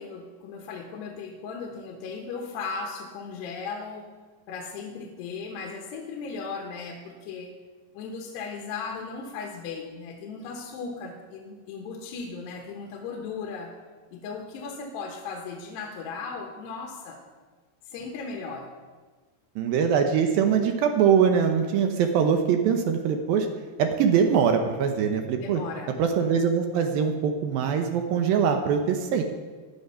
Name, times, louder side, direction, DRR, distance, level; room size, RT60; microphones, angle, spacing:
voice 1, 0.0-4.1 4.5-7.5 7.9-13.7 14.1-17.2 17.9-18.7 25.4-25.9, left 4 dB, 75° left, 1 dB, 3.1 m, -37 dB
voice 2, 19.6-23.5 23.8-25.6 26.0-29.2, right 7 dB, 75° right, 5 dB, 2.2 m, -23 dB
17.5 x 10.5 x 5.6 m, 1.4 s
omnidirectional pair, 5.2 m